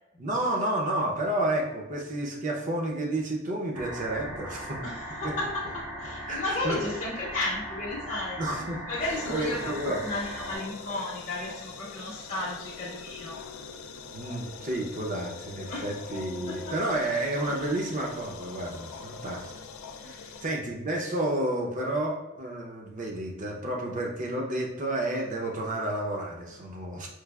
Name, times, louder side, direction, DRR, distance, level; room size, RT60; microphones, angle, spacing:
voice 1, 0.2-4.8 5.2-5.3 6.3-6.8 8.4-10.1 14.1-19.5 20.0-27.1, right 1 dB, 40° right, -1 dB, 0.6 m, -31 dB
sound 1, 3.7-10.6, equal, 85° right, 1.2 m, -39 dB
voice 2, 4.8-13.4 15.7-15.8 16.5-16.6 17.5-17.7 20.0-20.4, left 2 dB, 40° left, -6 dB, 0.6 m, -34 dB
sound 2, 9.0-20.5, left 5 dB, 80° left, 0.3 m, -43 dB
4.5 x 2.4 x 2.3 m, 1.0 s
head